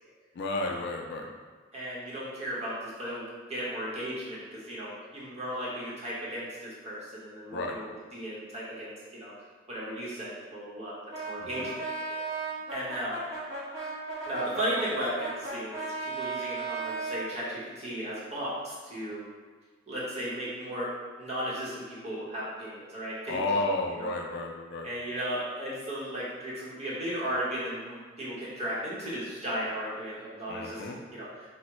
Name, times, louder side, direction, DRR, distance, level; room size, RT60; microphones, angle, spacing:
voice 1, 0.3-1.3 7.5-7.8 11.4-11.7 23.3-24.9 30.5-31.0, left 2 dB, 60° left, 2 dB, 0.3 m, -32 dB
voice 2, 1.7-9.3 9.7-11.0 11.2-11.7 12.1-12.2 12.7-13.2 14.3-19.3 19.9-23.6 24.0-24.1 24.8-31.5, equal, 35° right, -7 dB, 0.9 m, -35 dB
Brass instrument, 11.1-17.3, right 3 dB, 70° right, 0.9 m, -36 dB
3.4 x 2.1 x 2.9 m, 1.4 s
head